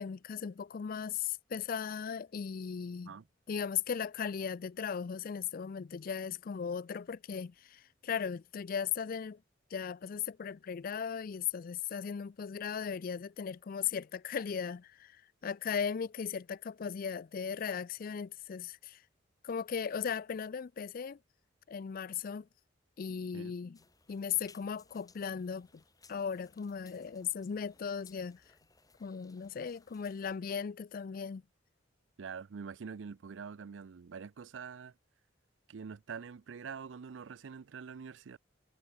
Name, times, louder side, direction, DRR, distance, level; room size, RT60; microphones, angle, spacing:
voice 1, 0.0-3.1 3.5-9.4 9.7-19.0 19.4-21.2 21.7-22.5 23.0-23.8 24.1-25.7 26.1-28.4 29.0-31.4, left 7 dB, 50° left, 0.4 m, -37 dB
sound 1, 23.7-30.4, left 4 dB, 20° left, 4.1 m, -64 dB
voice 2, 32.2-34.9 35.7-38.4, right 6 dB, 85° right, 0.5 m, -45 dB
head